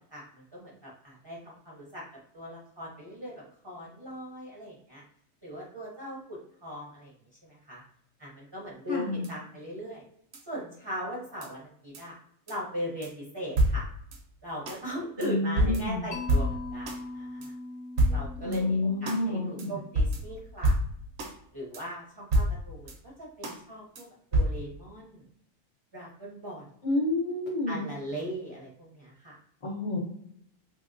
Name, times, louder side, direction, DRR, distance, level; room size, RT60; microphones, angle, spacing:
voice 1, 0.1-2.0 2.3-5.0 5.4-7.1 7.4-7.8 8.2-10.0 10.5-12.2 12.5-13.9 14.4-17.5 18.1-20.8 21.5-22.9 23.2-25.2 25.9-26.7 27.7-29.4, equal, 30° right, -4 dB, 0.5 m, -39 dB
voice 2, 8.9-9.3 15.2-16.1 18.4-19.7 26.8-27.8 29.6-30.0, left 2 dB, 45° left, -5 dB, 0.4 m, -29 dB
sound 1, 9.2-9.3 10.3-10.4 11.4-11.5 11.9-12.0 12.5-12.6 13.0-13.1 13.6-14.2 14.7-14.8 15.2-15.3 15.6-17.0 17.4-17.5 18.0-18.6 19.1-19.2 19.6-19.7 20.0-21.3 21.7-21.8 22.3-23.0 23.4-23.6 24.0-24.1 24.3-24.5, right 1 dB, 70° right, 0.9 m, -27 dB
Mallet percussion, 16.1-20.1, left 2 dB, 65° left, 0.9 m, -41 dB
2.8 x 2.8 x 2.5 m, 0.70 s
omnidirectional pair, 1.4 m